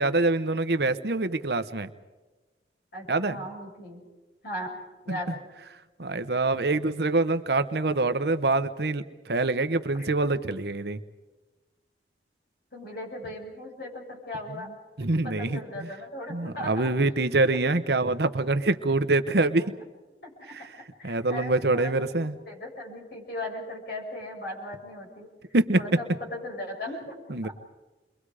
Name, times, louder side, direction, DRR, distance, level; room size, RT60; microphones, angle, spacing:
voice 1, 0.0-1.9 3.1-3.4 6.0-11.0 15.0-15.9 16.3-19.6 21.0-22.3 25.5-25.8 27.3-27.5, right 2 dB, 65° right, 11 dB, 0.9 m, -25 dB
voice 2, 2.9-4.0 4.4-4.7 5.0-5.4 9.9-10.1 12.7-14.7 15.2-16.9 19.5-19.7 20.2-20.6 21.0-22.1 22.4-25.3 25.7-27.2 27.4-27.5, left 1 dB, 60° left, -1 dB, 6.8 m, -37 dB
30.0 x 23.0 x 4.9 m, 1.2 s
head